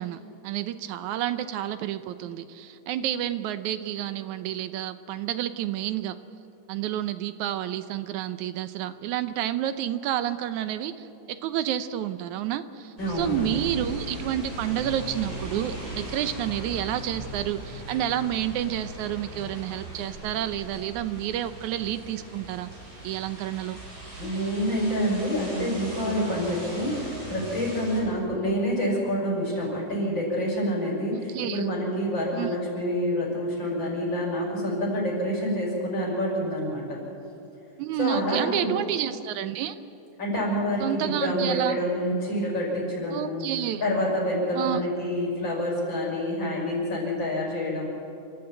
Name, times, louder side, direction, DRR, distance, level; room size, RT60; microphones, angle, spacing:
voice 1, 0.0-6.2 6.7-22.7 23.0-23.8 31.1-31.7 32.3-32.5 37.8-39.8 40.8-41.8 43.1-43.8 44.5-44.8, right 11 dB, 75° right, 12 dB, 2.0 m, -30 dB
voice 2, 13.0-13.7 24.2-37.0 38.0-38.8 40.2-43.5 43.8-47.9, equal, 35° left, -4 dB, 6.6 m, -27 dB
sound 1, 13.0-28.0, right 1 dB, 60° right, 7.0 m, -39 dB
29.0 x 12.5 x 8.9 m, 2.8 s
omnidirectional pair, 3.6 m